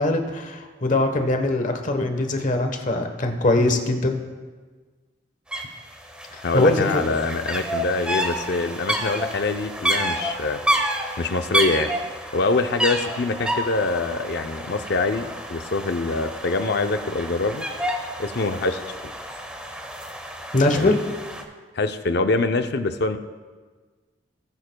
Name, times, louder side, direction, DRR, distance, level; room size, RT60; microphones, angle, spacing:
voice 1, 0.0-4.2 6.3-7.2 20.5-21.0, left 2 dB, 45° left, 5 dB, 1.1 m, -22 dB
sound 1, 5.5-5.6 5.9-21.4, right 1 dB, 5° right, 1.0 m, -29 dB
voice 2, 6.4-10.6 11.2-11.9 12.3-17.6 18.2-19.0 20.8-21.0 21.7-23.2, left 3 dB, 60° left, 8 dB, 0.6 m, -24 dB
19.0 x 9.7 x 2.3 m, 1.4 s
head